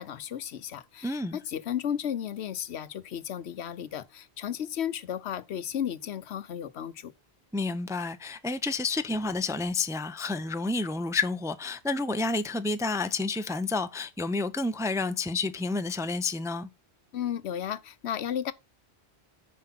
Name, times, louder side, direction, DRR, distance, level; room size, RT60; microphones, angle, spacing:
voice 1, 0.0-7.1 17.1-18.5, left 9 dB, 85° left, 1.0 m, -34 dB
voice 2, 1.0-1.4 7.5-16.7, left 3 dB, 5° right, 0.4 m, -30 dB
9.5 x 5.1 x 5.9 m
omnidirectional pair, 1.1 m